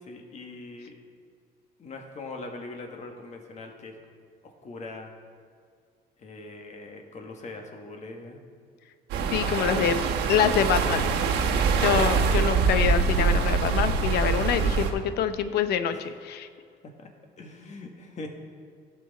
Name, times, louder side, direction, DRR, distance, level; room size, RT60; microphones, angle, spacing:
voice 1, 0.0-0.9 1.8-3.9 4.4-5.1 6.2-8.4 9.4-9.9 11.3-11.7 15.9-16.0 17.0-17.1 17.4-18.3, left 3 dB, 45° left, 2 dB, 1.7 m, -41 dB
sound 1, 9.1-14.9, right 5 dB, 85° right, 1.4 m, -24 dB
voice 2, 9.3-10.0 10.3-11.1 11.7-16.5, left 8 dB, 75° left, 11 dB, 0.7 m, -25 dB
16.5 x 6.2 x 4.2 m, 2.2 s
cardioid pair, 110°, 17 cm